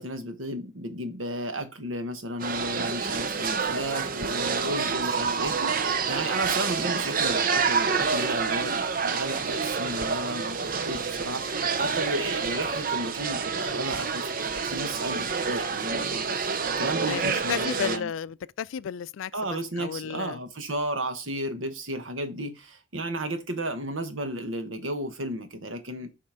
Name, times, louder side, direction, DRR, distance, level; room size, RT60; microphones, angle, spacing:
voice 1, 0.0-11.4 11.8-18.1 19.3-26.1, right 1 dB, 90° right, 1.3 m, -33 dB
sound 1, 2.4-18.0, right 5 dB, 45° right, 0.7 m, -28 dB
voice 2, 17.1-19.3 19.8-20.4, left 8 dB, 85° left, 0.3 m, -32 dB
7.5 x 4.4 x 5.0 m
head